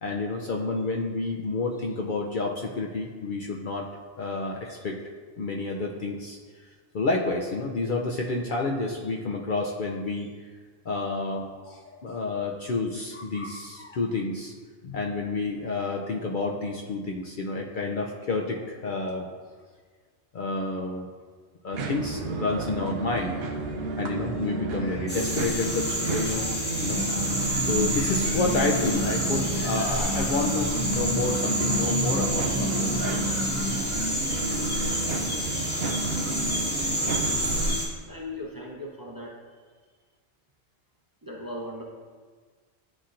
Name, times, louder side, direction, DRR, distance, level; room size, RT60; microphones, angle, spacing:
voice 1, 0.0-3.9 4.2-5.0 5.4-6.4 6.9-10.3 10.9-14.5 14.8-19.3 20.3-21.1 21.6-23.4 24.0-33.2, left 3 dB, 55° left, 0 dB, 0.6 m, -29 dB
sound 1, 21.7-37.8, right 3 dB, 65° right, 0.8 m, -32 dB
sound 2, 25.1-37.9, equal, 10° left, 1.4 m, -29 dB
sound 3, 26.9-33.8, equal, 45° right, 1.6 m, -32 dB
voice 2, 38.1-39.4 41.2-41.8, left 1 dB, 20° right, -3 dB, 0.7 m, -38 dB
11.0 x 4.2 x 2.5 m, 1.5 s
omnidirectional pair, 1.1 m